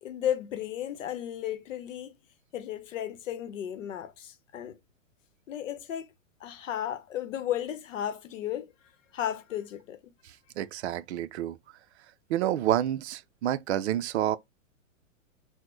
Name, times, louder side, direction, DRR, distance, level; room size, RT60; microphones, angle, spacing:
voice 1, 0.0-2.2 2.5-4.8 5.5-6.1 6.4-8.7 9.1-10.0, left 10 dB, 70° left, 0.8 m, -34 dB
voice 2, 10.6-11.6 12.3-14.4, right 12 dB, 55° right, 0.5 m, -28 dB
4.1 x 2.1 x 3.2 m
hypercardioid pair, 125°, 40 cm